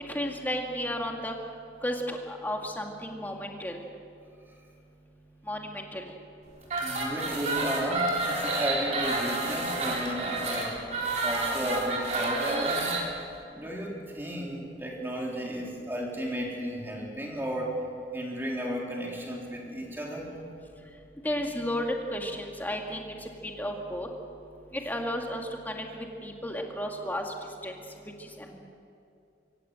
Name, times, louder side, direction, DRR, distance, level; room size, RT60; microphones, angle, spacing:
voice 1, 0.1-1.3 1.8-3.8 5.5-6.1 21.2-23.3 23.6-24.1 24.7-27.3 27.6-27.7 28.2-28.6, equal, 10° left, 1 dB, 2.1 m, -33 dB
sound 1, 6.6-13.0, right 2 dB, 40° right, 3.9 m, -29 dB
voice 2, 6.8-10.8 11.2-13.0 13.5-17.8 18.1-20.5, equal, 10° right, -2 dB, 3.7 m, -34 dB
25.0 x 16.0 x 7.7 m, 2.6 s
head